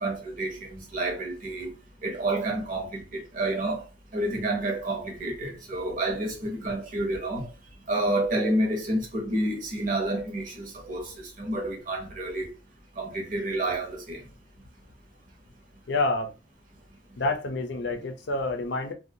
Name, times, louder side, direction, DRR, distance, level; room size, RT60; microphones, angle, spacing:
voice 1, 0.0-1.7 2.0-3.9 4.1-7.5 7.9-12.5 13.0-14.2, right 1 dB, 45° right, 0.9 m, -29 dB
voice 2, 15.9-16.3 17.2-18.9, left 2 dB, 65° left, 0.5 m, -28 dB
2.6 x 2.2 x 2.6 m
head